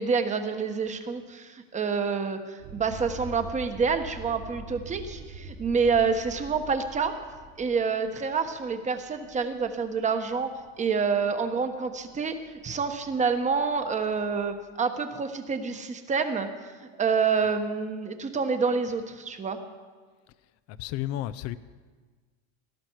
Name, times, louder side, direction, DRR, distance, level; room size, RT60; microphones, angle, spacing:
voice 1, 0.0-7.1 7.6-10.5 10.8-16.7 17.0-19.6, right 5 dB, 20° right, 1.3 m, -27 dB
sound 1, 2.6-14.4, right 2 dB, 75° right, 4.3 m, -46 dB
voice 2, 20.8-21.6, left 13 dB, 50° left, 0.7 m, -31 dB
18.0 x 12.5 x 4.7 m
supercardioid pair, 120°, 32 cm